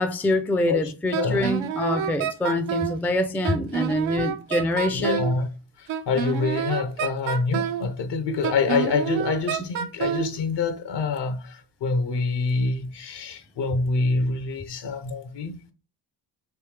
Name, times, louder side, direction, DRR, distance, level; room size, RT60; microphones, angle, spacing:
voice 1, 0.0-5.2, left 1 dB, 5° left, 0.4 m, -25 dB
voice 2, 0.6-1.5 4.1-4.2 4.9-5.5 5.8-15.6, left 4 dB, 60° left, 0.8 m, -26 dB
Wind instrument woodwind instrument, 1.1-3.0 3.4-5.4 5.9-7.9 8.4-10.3, right 9 dB, 80° right, 0.6 m, -28 dB
3.4 x 2.8 x 3.2 m
supercardioid pair, 60°, 47 cm